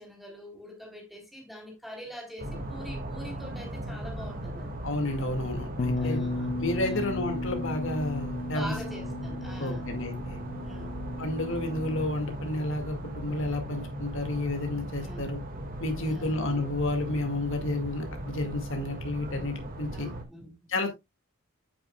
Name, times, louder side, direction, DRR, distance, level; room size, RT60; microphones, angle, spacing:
voice 1, 0.0-4.8 6.0-6.5 6.8-7.1 8.5-9.9 10.6-11.0 15.0-15.3 16.0-16.3 19.9-20.7, equal, ahead, 3.7 m, -44 dB
sound 1, 2.4-20.2, right 1 dB, 45° right, 2.0 m, -38 dB
voice 2, 4.8-6.2 6.6-8.7 9.6-10.4 11.2-15.4 15.8-20.1 20.7-20.9, left 2 dB, 65° left, 2.1 m, -31 dB
Bass guitar, 5.8-12.0, left 2 dB, 35° left, 0.5 m, -35 dB
9.2 x 8.6 x 2.3 m
head